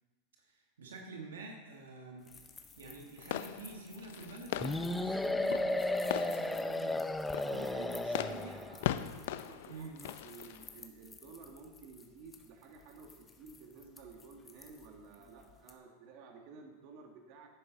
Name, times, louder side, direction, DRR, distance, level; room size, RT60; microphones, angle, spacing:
voice 1, 0.4-2.3 2.8-8.6 9.7-10.1, right 3 dB, 90° right, 1 dB, 1.7 m, -48 dB
sound 1, 2.2-15.8, left 5 dB, 20° left, 1.3 m, -57 dB
sound 2, 3.2-10.8, left 12 dB, 70° left, 0.5 m, -40 dB
sound 3, 4.6-8.8, left 2 dB, 5° left, 0.4 m, -34 dB
voice 2, 7.4-17.5, right 5 dB, 55° right, 2 dB, 1.9 m, -53 dB
10.5 x 10.5 x 4.0 m, 1.3 s
hypercardioid pair, 110°, 0 cm